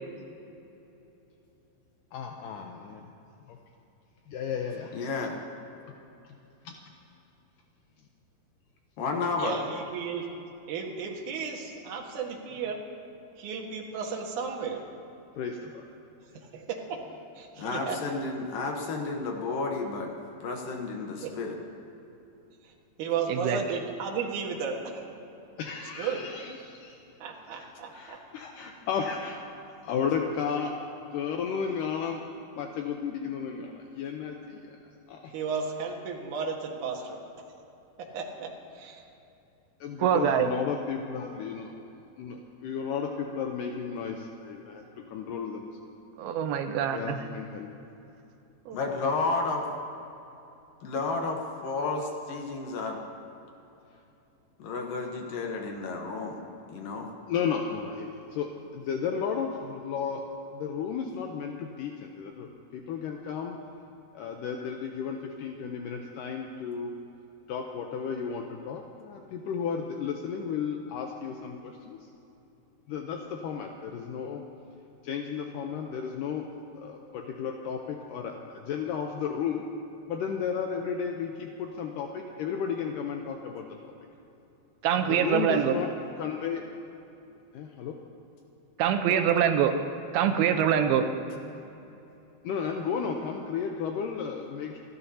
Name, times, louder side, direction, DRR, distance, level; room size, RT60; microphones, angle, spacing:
voice 1, 2.1-3.1 3.5-3.6 4.3-5.0 6.7-6.8 9.5-9.8 15.4-15.8 25.6-27.0 27.5-27.7 27.9-29.4 29.8-30.7 31.1-32.2 32.6-34.8 35.1-35.3 39.8-41.7 42.2-45.9 46.9-47.7 57.3-60.2 60.5-63.6 64.1-66.9 67.5-72.0 72.9-74.4 75.0-76.5 76.8-79.6 80.1-83.7 85.1-85.9 86.2-86.6 87.5-88.0 89.1-89.2 92.4-94.8, left 6 dB, 85° left, 2 dB, 1.9 m, -33 dB
voice 2, 4.9-5.4 9.0-9.6 17.6-20.1 20.4-21.6 48.7-49.7 50.8-53.0 54.6-56.4 56.7-57.1, left 3 dB, 70° left, 2 dB, 2.5 m, -31 dB
voice 3, 9.4-10.3 10.7-12.8 13.4-14.8 16.5-17.0 17.4-18.0 21.2-21.3 22.6-22.7 23.0-25.0 25.8-26.3 27.2-28.2 35.3-37.2 38.0-39.0, right 6 dB, 60° right, 0 dB, 2.5 m, -34 dB
voice 4, 23.3-23.6 40.0-40.5 46.2-47.3 48.7-48.8 84.8-85.8 88.8-89.7 90.1-91.1, right 9 dB, 80° right, 7 dB, 2.4 m, -24 dB
28.0 x 12.5 x 2.8 m, 2.9 s
omnidirectional pair, 4.7 m